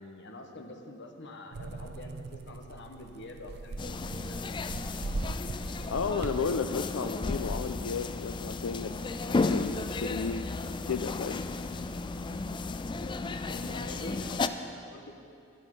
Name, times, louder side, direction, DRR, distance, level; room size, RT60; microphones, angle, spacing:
voice 1, 0.0-4.6 13.5-15.1, left 1 dB, 60° left, 3 dB, 1.1 m, -46 dB
sound 1, 1.5-6.5, right 3 dB, 55° right, 0.5 m, -39 dB
sound 2, 3.8-14.5, left 3 dB, 25° left, 0.3 m, -34 dB
voice 2, 5.9-10.4 10.9-11.4, left 5 dB, 85° left, 7 dB, 0.4 m, -33 dB
11.0 x 9.7 x 5.4 m, 2.5 s
head